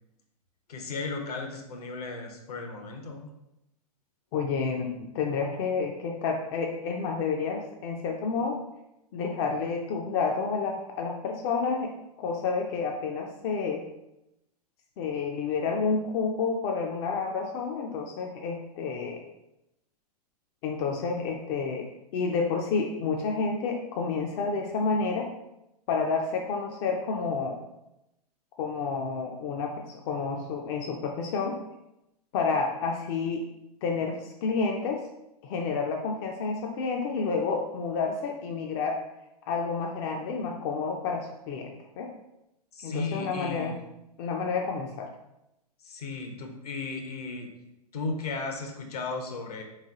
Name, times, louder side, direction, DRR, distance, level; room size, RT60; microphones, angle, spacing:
voice 1, 0.7-3.3 42.7-43.8 45.8-47.5 47.9-49.6, left 3 dB, 70° left, 2 dB, 0.9 m, -35 dB
voice 2, 4.3-8.6 9.1-11.9 12.2-13.8 15.0-19.2 20.6-25.3 25.9-27.6 28.6-31.6 32.3-33.5 33.8-35.0 35.4-39.0 39.5-42.1 42.8-43.8 44.2-45.1, left 4 dB, 40° left, 1 dB, 0.5 m, -30 dB
3.7 x 3.3 x 3.6 m, 0.88 s
figure-of-eight pair, 105°, 20 cm